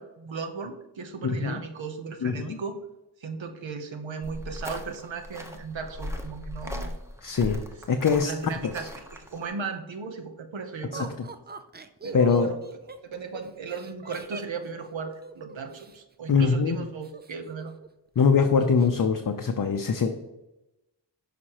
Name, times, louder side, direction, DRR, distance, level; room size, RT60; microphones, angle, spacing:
voice 1, 0.0-2.8 3.2-6.9 8.2-11.1 12.0-12.6 13.0-17.7, right 5 dB, 75° right, 6 dB, 0.9 m, -36 dB
voice 2, 1.2-1.6 2.2-2.6 7.2-7.6 7.9-8.5 10.9-11.1 12.1-12.5 16.3-16.8 18.2-20.1, left 5 dB, 45° left, 6 dB, 0.5 m, -23 dB
sound 1, 4.2-9.4, left 1 dB, 5° right, 0.9 m, -38 dB
Laughter, 10.9-16.0 17.0-17.9 18.2-18.3 18.6-19.1, right 4 dB, 25° right, 0.4 m, -41 dB
6.4 x 5.1 x 2.9 m, 0.96 s
cardioid pair, 40°, 46 cm